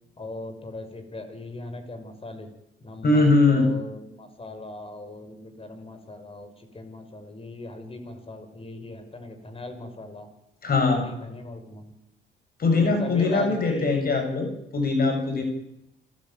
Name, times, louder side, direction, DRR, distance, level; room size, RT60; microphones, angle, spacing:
voice 1, 0.2-2.5 2.8-10.3 10.9-11.9 12.7-14.0, left 2 dB, 30° left, 8 dB, 5.6 m, -38 dB
voice 2, 3.0-3.7 10.6-11.1 12.6-15.4, left 3 dB, 50° left, 5 dB, 7.4 m, -21 dB
28.0 x 12.5 x 9.3 m, 0.80 s
cardioid pair, 90°, 20 cm